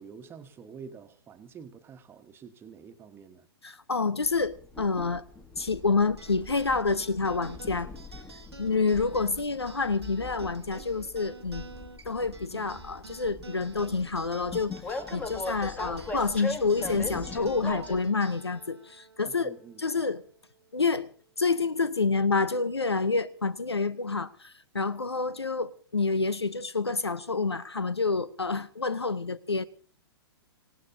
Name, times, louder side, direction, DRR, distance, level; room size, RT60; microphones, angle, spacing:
voice 1, 0.0-3.5 19.2-19.8, right 6 dB, 15° right, 1.3 m, -47 dB
voice 2, 3.6-5.2 5.6-7.9 8.6-11.7 12.0-14.7 15.1-20.2 20.7-21.1 21.4-29.7, left 4 dB, 85° left, 0.8 m, -28 dB
Train, 4.2-18.0, left 3 dB, 10° left, 1.7 m, -40 dB
sound 1, 6.2-20.9, right 3 dB, 85° right, 1.4 m, -49 dB
26.5 x 17.0 x 2.7 m
figure-of-eight pair, 110°, 13 cm